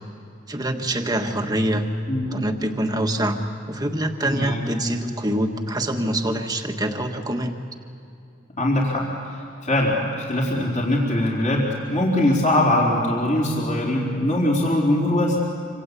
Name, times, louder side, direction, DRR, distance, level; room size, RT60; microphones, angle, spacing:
voice 1, 0.5-1.9 2.2-3.4 3.7-7.5, right 1 dB, 20° right, 4 dB, 1.6 m, -25 dB
voice 2, 2.1-2.4 4.2-4.6 8.6-9.1 9.6-10.0 10.3-15.4, left 1 dB, 35° left, -3 dB, 4.2 m, -21 dB
27.0 x 26.0 x 8.5 m, 2.6 s
head